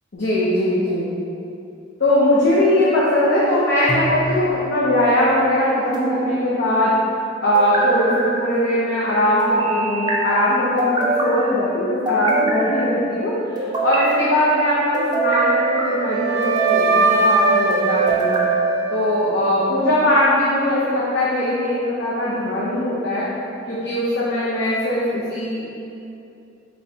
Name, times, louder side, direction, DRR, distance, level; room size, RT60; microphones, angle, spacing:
voice 1, 0.1-1.1 2.0-7.0 7.4-18.4 18.9-23.3 23.7-25.6, left 1 dB, 60° left, -8 dB, 0.6 m, -20 dB
sound 1, 3.9-4.6 5.9-6.7 7.5-8.3 9.4-10.2 10.8-11.4 12.1-12.9 13.6-14.2 14.9-15.9 16.4-17.0 17.7-18.5, right 3 dB, 20° right, 0.5 m, -23 dB
Wind instrument woodwind instrument, 15.4-19.5, right 3 dB, 85° right, 0.4 m, -21 dB
4.3 x 3.3 x 2.7 m, 2.7 s
head